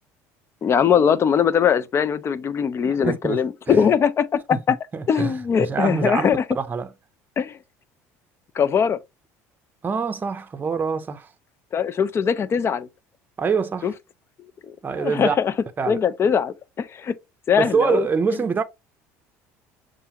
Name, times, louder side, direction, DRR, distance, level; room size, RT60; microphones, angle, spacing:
voice 1, 0.6-4.8 5.1-6.4 7.4-7.6 8.5-9.0 11.7-12.9 13.8-13.9 15.0-15.5 15.9-17.2 17.5-18.1, left 7 dB, 35° left, 0.5 m, -21 dB
voice 2, 3.0-3.8 4.5-4.6 4.9-6.3 6.5-6.9 9.8-11.3 13.4-13.9 14.8-15.4 15.8-16.0 17.6-18.6, right 5 dB, 25° right, 0.6 m, -25 dB
6.7 x 2.5 x 2.9 m
supercardioid pair, 90°, 7 cm